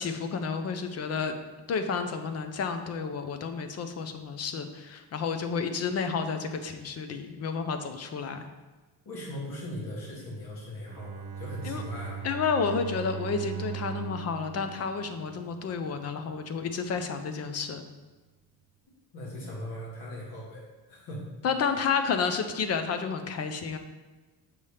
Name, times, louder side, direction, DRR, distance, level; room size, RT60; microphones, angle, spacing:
voice 1, 0.0-1.3 1.7-8.5 11.6-11.8 12.2-17.8 21.4-23.8, left 5 dB, 35° left, 8 dB, 0.5 m, -31 dB
voice 2, 9.1-12.2 19.1-21.3 21.6-21.8, left 1 dB, 60° left, -5 dB, 1.9 m, -39 dB
Bowed string instrument, 10.9-15.8, right 9 dB, 50° right, 1.1 m, -39 dB
7.0 x 3.3 x 5.5 m, 1.3 s
cardioid pair, 170°, 42 cm